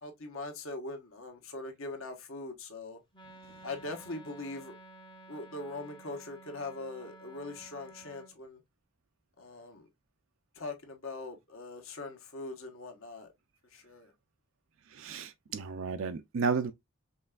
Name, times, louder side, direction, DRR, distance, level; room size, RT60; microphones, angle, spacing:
voice 1, 0.0-3.0 3.6-4.7 5.3-8.6 9.4-9.9 10.5-13.3 13.7-14.1, left 2 dB, 65° left, 1.2 m, -41 dB
Wind instrument woodwind instrument, 3.1-8.3, right 2 dB, 20° left, 0.7 m, -53 dB
voice 2, 14.9-16.7, right 5 dB, 60° right, 0.4 m, -32 dB
5.4 x 3.3 x 2.3 m
head